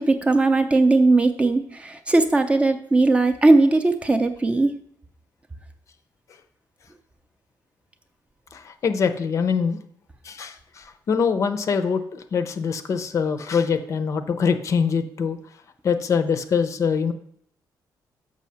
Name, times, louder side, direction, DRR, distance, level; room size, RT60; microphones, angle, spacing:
voice 1, 0.0-4.7, right 2 dB, 15° right, 7 dB, 0.5 m, -18 dB
voice 2, 8.5-9.8 10.2-15.4 15.8-17.1, left 6 dB, 45° left, 9 dB, 0.6 m, -24 dB
6.3 x 6.3 x 5.7 m, 0.66 s
cardioid pair, 160°, 7 cm